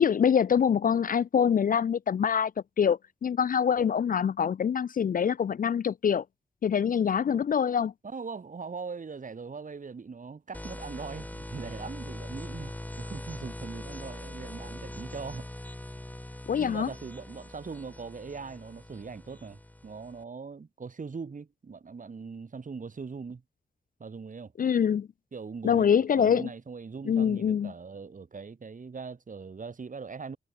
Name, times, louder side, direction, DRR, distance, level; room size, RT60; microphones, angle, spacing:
voice 1, 0.0-2.5 2.8-6.2 6.6-7.9 16.5-16.9 24.6-25.1 25.6-26.5 27.1-27.7, left 7 dB, 50° left, 0.4 m, -25 dB
voice 2, 8.0-15.5 16.5-23.4 24.0-24.5 25.3-30.4, right 5 dB, 45° right, 1.9 m, -41 dB
sound 1, 10.5-20.2, left 1 dB, 10° left, 1.7 m, -42 dB
wide cardioid pair, 105°, 18 cm